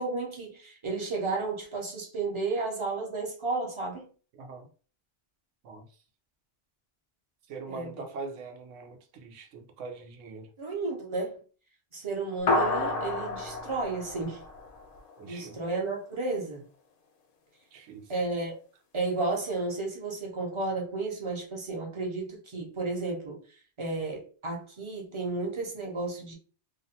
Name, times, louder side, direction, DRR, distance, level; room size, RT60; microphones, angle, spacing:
voice 1, 0.0-4.1 7.7-7.9 10.6-11.4 11.9-14.4 15.2-16.6 18.1-18.6 18.9-23.4 23.8-26.3, right 3 dB, 35° right, 0.5 m, -32 dB
voice 2, 4.4-4.7 5.6-5.9 7.5-10.5 15.2-15.6 17.7-18.1, right 4 dB, 90° right, 0.9 m, -42 dB
sound 1, 12.5-15.2, left 2 dB, 70° left, 0.3 m, -30 dB
2.5 x 2.2 x 2.7 m
omnidirectional pair, 1.2 m